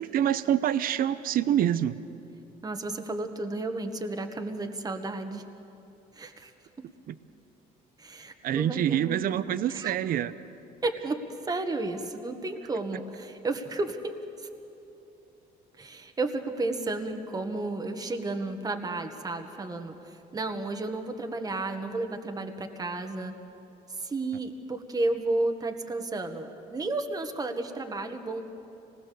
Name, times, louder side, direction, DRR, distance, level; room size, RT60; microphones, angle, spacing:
voice 1, 0.0-2.0 7.1-7.2 8.4-10.3, right 10 dB, 60° right, 14 dB, 0.7 m, -26 dB
voice 2, 2.6-5.4 6.1-6.5 8.0-9.2 9.7-9.9 10.8-14.5 15.8-23.3 23.9-28.4, right 2 dB, 20° right, 5 dB, 1.6 m, -32 dB
26.0 x 19.5 x 6.9 m, 2.9 s
cardioid pair, 110°, 17 cm